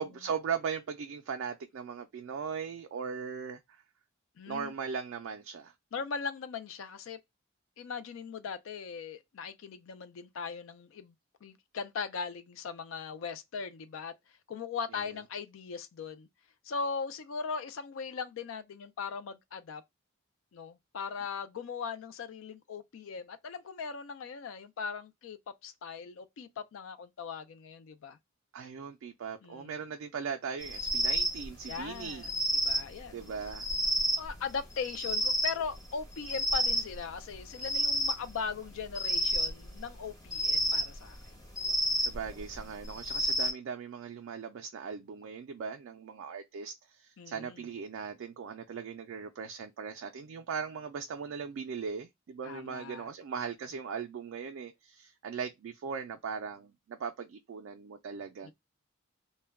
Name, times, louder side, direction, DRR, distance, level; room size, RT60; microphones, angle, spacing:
voice 1, 0.0-3.6 4.5-5.7 28.5-32.3 33.1-33.7 42.0-58.5, right 6 dB, 60° right, 0.3 m, -39 dB
voice 2, 4.4-4.7 5.9-7.2 7.8-11.1 11.4-14.1 14.5-16.3 16.6-19.8 20.5-28.2 29.4-29.7 31.7-33.6 34.2-41.4 47.2-47.6 52.4-53.1 58.4-58.5, left 5 dB, 65° left, 0.3 m, -39 dB
sound 1, 30.6-43.5, equal, 15° left, 0.6 m, -31 dB
2.2 x 2.1 x 3.3 m
head